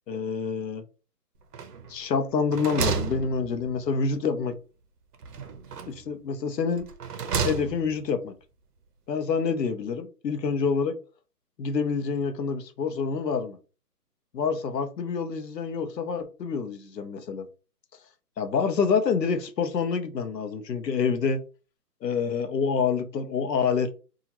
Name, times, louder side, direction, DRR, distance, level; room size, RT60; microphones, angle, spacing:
voice 1, 0.1-0.8 1.9-4.6 5.9-6.9 7.4-8.3 9.1-11.0 11.6-13.6 14.3-17.5 18.4-21.4 22.0-23.9, left 5 dB, 90° left, 0.8 m, -27 dB
sound 1, 1.5-2.0 2.3-4.0 5.2-6.1 6.8-8.0, right 5 dB, 75° right, 0.7 m, -31 dB
2.8 x 2.4 x 2.9 m
hypercardioid pair, 165°, 48 cm